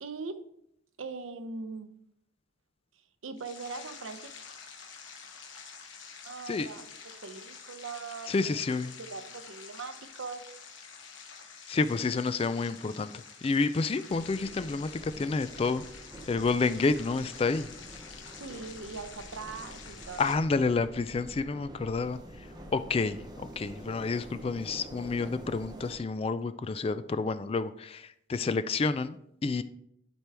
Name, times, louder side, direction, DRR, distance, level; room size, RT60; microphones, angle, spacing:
voice 1, 0.0-0.4 1.0-1.9 3.2-4.3 6.2-10.5 18.4-20.3, right 4 dB, 80° right, 9 dB, 0.7 m, -41 dB
sound 1, 3.4-20.4, left 6 dB, 70° left, 1.1 m, -48 dB
voice 2, 8.3-8.9 11.7-13.1 13.4-15.8 16.3-17.7 20.2-22.2 22.7-29.2 29.4-29.6, left 4 dB, 30° left, 12 dB, 0.3 m, -29 dB
sound 2, 14.1-26.0, right 1 dB, 20° right, 0.8 m, -47 dB
11.5 x 4.5 x 3.4 m, 0.76 s
head